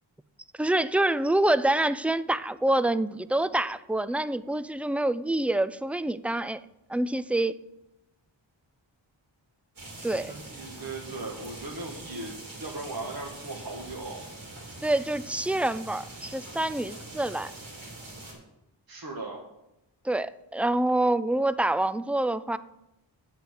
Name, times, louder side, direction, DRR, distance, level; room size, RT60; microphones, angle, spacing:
voice 1, 0.6-6.6 6.9-7.5 10.0-10.3 14.8-17.5 20.0-22.6, right 1 dB, 5° right, 15 dB, 0.3 m, -26 dB
sound 1, 9.8-18.3, right 2 dB, 85° right, 3.6 m, -43 dB
voice 2, 10.3-14.2 18.9-19.4, right 2 dB, 50° right, -1 dB, 1.6 m, -38 dB
8.4 x 8.1 x 6.5 m, 0.90 s
wide cardioid pair, 65°, 46 cm